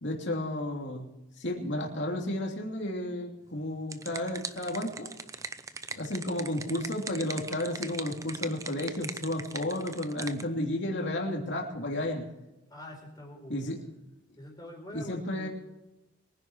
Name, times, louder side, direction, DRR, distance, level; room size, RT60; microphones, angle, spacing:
voice 1, 0.0-1.1 1.4-5.1 5.9-12.2 13.5-13.8 14.9-15.5, left 1 dB, 60° left, 0 dB, 2.9 m, -32 dB
sound 1, 3.6-10.4, right 4 dB, 15° right, 0.6 m, -41 dB
voice 2, 12.7-13.7 14.4-15.5, left 1 dB, 20° left, -1 dB, 4.3 m, -45 dB
23.0 x 10.5 x 4.6 m, 0.98 s
head